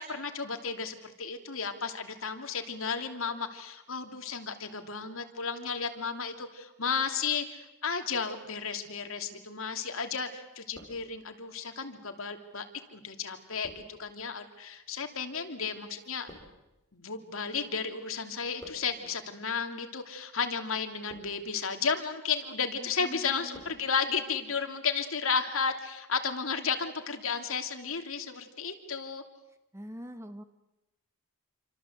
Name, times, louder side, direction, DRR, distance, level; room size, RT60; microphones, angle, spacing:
voice 1, 0.0-12.6 12.9-16.3 16.9-29.2, left 5 dB, 65° left, 6 dB, 2.9 m, -33 dB
sound 1, 9.6-10.2 10.5-11.5 12.2-17.9 18.1-19.1 19.8-20.1 20.8-21.6 22.1-22.5 22.9-23.8 24.1-24.2, left 1 dB, 20° left, 5.8 m, -55 dB
voice 2, 22.8-23.6 29.7-30.4, equal, 15° right, 9 dB, 1.7 m, -44 dB
28.5 x 25.0 x 8.1 m, 0.94 s
head